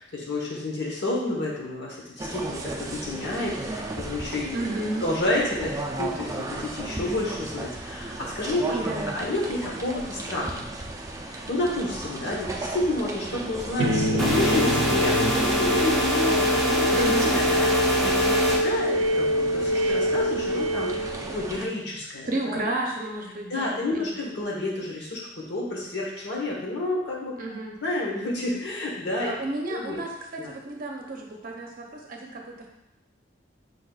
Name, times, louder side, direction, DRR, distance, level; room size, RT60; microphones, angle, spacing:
voice 1, 0.0-4.7 5.0-10.7 11.3-22.6 23.5-27.4 27.8-29.3 29.7-30.0 30.4-30.5, left 2 dB, 65° left, -3 dB, 1.2 m, -30 dB
sound 1, 2.2-21.7, right 2 dB, 15° right, 0.5 m, -35 dB
voice 2, 4.5-5.1 8.7-9.1 16.9-17.3 22.2-24.2 27.4-27.7 29.2-32.7, right 2 dB, 50° right, 1 dB, 0.7 m, -32 dB
sound 2, 13.8-21.7, left 1 dB, 85° right, 0.5 m, -25 dB
sound 3, 14.2-18.6, equal, ahead, 0.9 m, -25 dB
5.3 x 4.0 x 2.3 m, 0.92 s
head